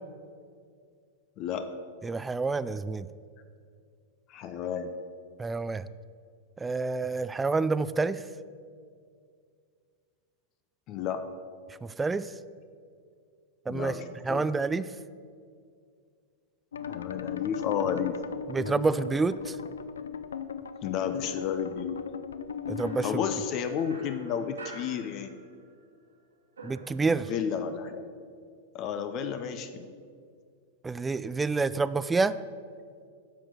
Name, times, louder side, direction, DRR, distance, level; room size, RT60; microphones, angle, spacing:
voice 1, 1.4-1.7 4.3-4.9 10.9-11.3 13.7-14.5 16.9-18.2 20.8-22.0 23.0-25.3 27.1-28.0 28.7-29.9, left 7 dB, 45° left, 9 dB, 0.7 m, -32 dB
voice 2, 2.0-3.1 5.4-5.9 6.6-8.2 11.8-12.3 13.7-14.9 18.5-19.6 22.7-23.2 26.6-27.3 30.8-32.4, right 4 dB, 15° right, 15 dB, 0.3 m, -28 dB
sound 1, 16.7-23.5, left 8 dB, 80° left, 0.5 m, -37 dB
sound 2, 22.8-25.8 26.1-27.6, right 2 dB, 90° right, 1.7 m, -48 dB
10.0 x 6.3 x 6.2 m, 2.2 s
hypercardioid pair, 100°, 0 cm